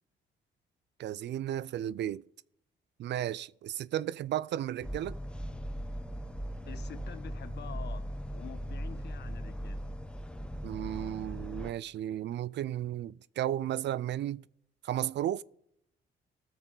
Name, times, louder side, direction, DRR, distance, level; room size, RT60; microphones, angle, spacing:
voice 1, 1.0-2.2 3.0-5.1 10.6-14.4 14.8-15.4, right 12 dB, 60° right, 0.4 m, -34 dB
sound 1, 4.8-11.7, equal, 5° left, 0.8 m, -39 dB
voice 2, 6.7-9.8, left 8 dB, 60° left, 1.2 m, -48 dB
20.0 x 6.7 x 3.9 m
cardioid pair, 90°, 20 cm